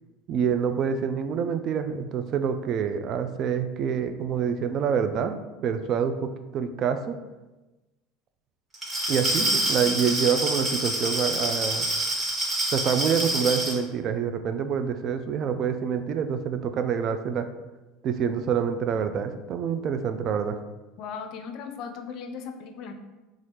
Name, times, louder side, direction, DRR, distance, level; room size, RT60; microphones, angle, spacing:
voice 1, 0.3-5.4 5.6-7.2 9.1-11.9 12.7-17.5 18.0-20.6, right 7 dB, 50° right, 9 dB, 0.3 m, -26 dB
Glass, 8.7-13.8, right 1 dB, 25° right, 1.3 m, -27 dB
voice 2, 21.0-22.9, left 6 dB, 55° left, 7 dB, 0.4 m, -37 dB
4.0 x 2.4 x 3.2 m, 1.1 s
hypercardioid pair, 70°, 0 cm